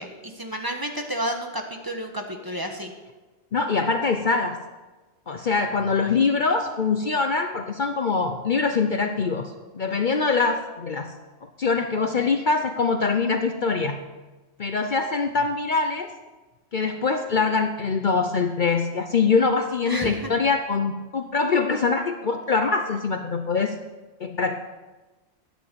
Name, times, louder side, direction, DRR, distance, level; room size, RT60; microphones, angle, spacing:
voice 1, 0.0-2.9 19.9-20.3, right 1 dB, 20° right, 3 dB, 1.3 m, -31 dB
voice 2, 3.5-4.6 5.3-11.1 11.6-14.1 14.6-16.1 16.7-23.7 24.2-24.6, left 4 dB, 50° left, 7 dB, 0.8 m, -23 dB
12.5 x 9.2 x 6.9 m, 1.2 s
omnidirectional pair, 1.2 m